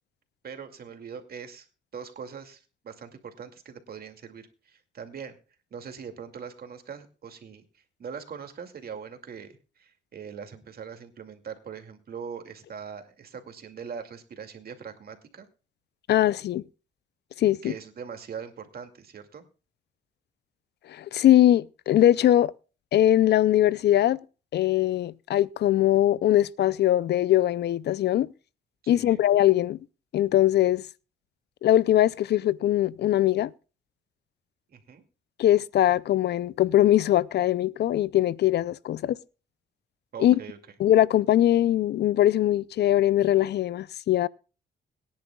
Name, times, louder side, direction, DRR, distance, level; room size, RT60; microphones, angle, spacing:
voice 1, 0.4-1.7 1.9-5.4 5.7-15.5 17.6-19.4 28.9-29.2 34.7-35.0 40.1-40.6, right 6 dB, 55° right, 2.3 m, -41 dB
voice 2, 16.1-16.6 17.4-17.7 20.9-22.5 22.9-24.2 24.5-28.3 28.9-29.8 30.1-30.8 31.6-33.5 35.4-39.2 40.2-40.4 40.8-44.3, left 12 dB, 65° left, 0.5 m, -21 dB
22.0 x 10.5 x 2.3 m
cardioid pair, 85°, 19 cm